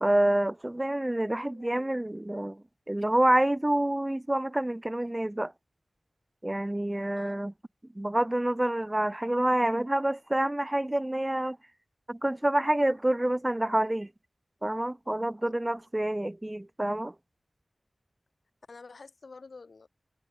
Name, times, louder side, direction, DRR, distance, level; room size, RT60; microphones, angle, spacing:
voice 1, 0.0-5.5 6.4-7.5 8.0-11.6 12.1-14.1 14.6-17.1, right 1 dB, 15° right, 0.4 m, -27 dB
voice 2, 1.2-2.0 7.1-7.4 15.5-15.6 18.7-19.9, left 4 dB, 65° left, 1.5 m, -50 dB
wide cardioid pair, 95°, 0 cm